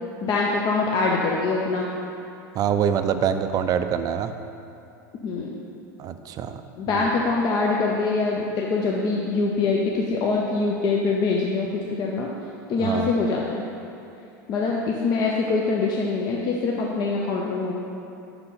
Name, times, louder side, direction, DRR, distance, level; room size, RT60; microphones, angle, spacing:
voice 1, 0.2-1.9 5.2-5.6 6.8-12.3 12.7-13.6 14.5-17.7, left 3 dB, 45° left, -2 dB, 0.7 m, -24 dB
voice 2, 2.5-4.3 6.0-6.6 6.9-7.1 12.8-13.1, right 8 dB, 35° right, 9 dB, 0.4 m, -25 dB
5.6 x 4.0 x 5.6 m, 2.7 s
hypercardioid pair, 100°, 10 cm